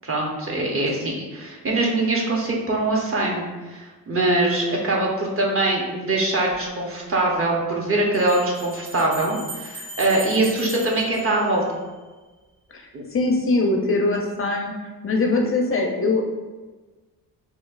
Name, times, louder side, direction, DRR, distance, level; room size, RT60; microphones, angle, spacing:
voice 1, 0.0-11.6 12.9-13.0, right 2 dB, 35° right, -2 dB, 0.9 m, -23 dB
Bell, 6.5-6.6 8.1-12.1, right 2 dB, 55° right, 1.3 m, -38 dB
voice 2, 13.1-14.7 15.0-16.2, left 2 dB, 35° left, 1 dB, 0.4 m, -21 dB
4.1 x 2.7 x 2.4 m, 1.3 s
cardioid pair, 80°, 37 cm